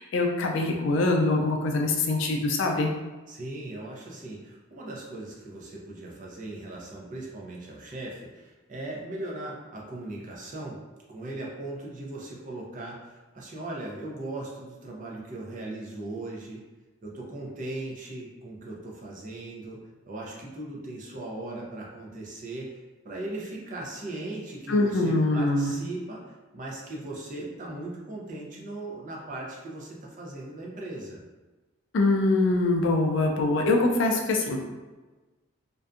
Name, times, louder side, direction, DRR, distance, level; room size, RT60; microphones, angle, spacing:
voice 1, 0.0-2.9 24.7-25.7 31.9-34.6, left 2 dB, 60° left, 2 dB, 0.4 m, -24 dB
voice 2, 3.3-10.8 11.1-16.6 17.0-19.8 20.1-31.2, right 2 dB, 40° right, -3 dB, 0.5 m, -38 dB
2.5 x 2.2 x 2.4 m, 1.2 s
head